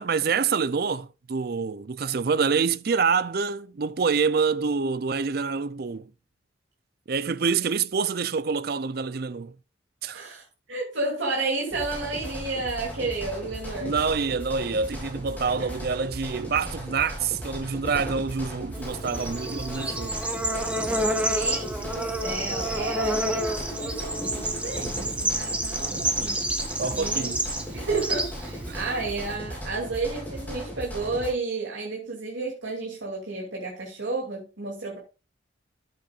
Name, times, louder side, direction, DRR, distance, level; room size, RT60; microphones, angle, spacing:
voice 1, 0.0-6.1 7.1-9.5 10.0-10.2 13.8-20.2 25.9-26.1 26.8-27.5 28.7-28.8, right 5 dB, 55° right, 0.5 m, -26 dB
voice 2, 10.1-13.9 15.4-15.7 21.1-27.3 27.7-35.0, right 3 dB, 80° right, 2.8 m, -32 dB
sound 1, 11.7-31.3, equal, 10° left, 3.7 m, -37 dB
Bird / Insect, 18.7-29.3, right 1 dB, 5° right, 1.2 m, -29 dB
13.0 x 7.7 x 2.5 m
head